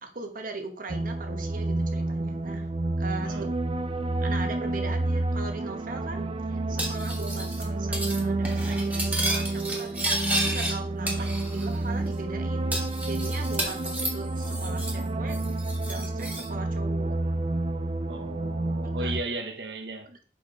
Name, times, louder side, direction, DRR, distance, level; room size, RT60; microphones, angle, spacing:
voice 1, 0.0-2.7 3.0-3.5 4.2-11.2 11.5-15.6 15.9-17.2 19.0-19.2 20.1-20.3, right 3 dB, 50° right, 1.1 m, -39 dB
sound 1, 0.9-19.2, right 2 dB, 30° right, 0.4 m, -29 dB
Cutlery silverware, 6.8-7.6 7.9-8.2 8.5-10.7 11.1-11.8 12.1-12.2 12.7-15.0 15.3-16.5, right 1 dB, 10° right, 1.4 m, -32 dB
voice 2, 18.1-20.1, right 2 dB, 70° right, 1.0 m, -36 dB
4.7 x 4.6 x 4.7 m
head